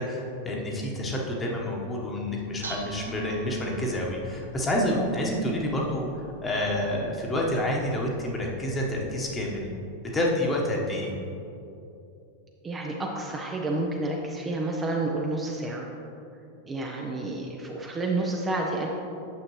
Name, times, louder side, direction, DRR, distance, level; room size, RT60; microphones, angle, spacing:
voice 1, 0.0-6.1 6.4-9.7 10.1-11.1, left 1 dB, 15° left, -1 dB, 1.3 m, -28 dB
Dishes pots and pans, 2.2-9.6, right 2 dB, 75° right, 0.8 m, -46 dB
voice 2, 12.6-15.9 16.7-18.9, right 2 dB, 15° right, -1 dB, 0.7 m, -30 dB
9.3 x 7.2 x 3.2 m, 2.8 s
figure-of-eight pair, 90°, 0 cm